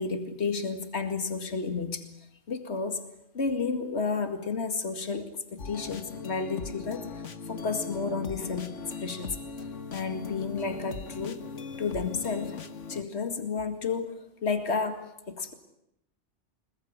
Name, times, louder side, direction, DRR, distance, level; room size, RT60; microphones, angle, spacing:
voice 1, 0.0-2.1 2.5-3.0 3.3-9.7 9.9-11.5 11.8-12.6 12.9-15.5, left 4 dB, 65° left, 8 dB, 2.4 m, -32 dB
sound 1, 5.6-13.0, left 4 dB, 85° left, 1.9 m, -39 dB
25.5 x 21.5 x 9.6 m, 0.78 s
omnidirectional pair, 1.2 m